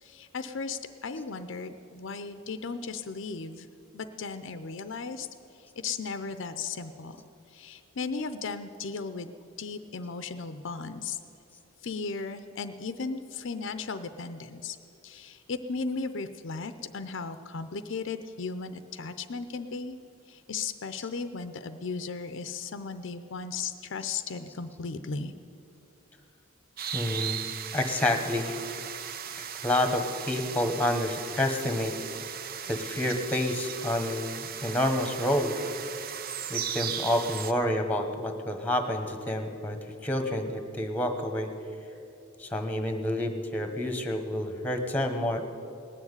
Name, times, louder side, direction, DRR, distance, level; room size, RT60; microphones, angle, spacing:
voice 1, 0.0-3.7 3.9-5.3 5.8-7.2 7.5-9.3 9.6-11.2 11.8-14.8 15.0-20.0 20.3-25.3, left 4 dB, 60° left, 10 dB, 0.6 m, -36 dB
sound 1, 26.8-37.5, right 8 dB, 45° right, 0.5 m, -37 dB
voice 2, 26.9-27.4 27.7-28.6 29.4-31.9 32.6-35.5 36.5-41.5 42.4-45.4, left 1 dB, 10° left, 6 dB, 1.1 m, -29 dB
18.5 x 7.2 x 9.7 m, 2.7 s
head